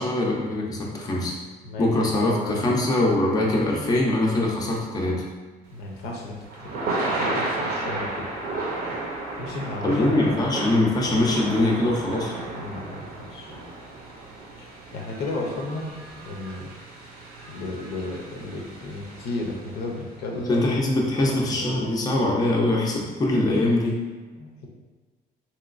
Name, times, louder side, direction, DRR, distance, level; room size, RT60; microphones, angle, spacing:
voice 1, 0.0-1.3 1.8-5.2 9.8-12.3 20.5-24.0, left 1 dB, 20° left, -2 dB, 0.6 m, -23 dB
voice 2, 1.6-2.6 5.7-6.8 7.1-8.4 9.4-10.4 12.5-13.5 14.6-15.9 16.3-16.7 17.5-20.6 21.1-22.0 24.4-24.7, left 2 dB, 75° left, -1 dB, 0.6 m, -34 dB
Thunder / Rain, 5.7-20.0, right 2 dB, 65° right, 0.7 m, -33 dB
3.0 x 3.0 x 2.5 m, 1.3 s
cardioid pair, 110°, 17 cm